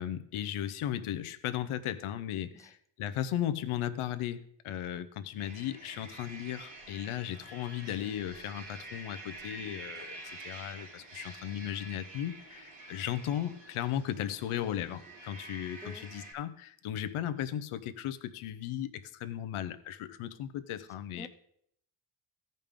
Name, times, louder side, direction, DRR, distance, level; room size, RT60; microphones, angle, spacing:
voice 1, 0.0-21.3, left 11 dB, 85° left, 11 dB, 0.8 m, -36 dB
voice 2, 2.5-2.7 15.8-16.1 21.1-21.3, left 1 dB, 5° left, 8 dB, 0.6 m, -47 dB
sound 1, 5.4-16.3, right 2 dB, 75° right, 2.9 m, -48 dB
15.5 x 5.3 x 3.6 m, 0.68 s
cardioid pair, 135°, 49 cm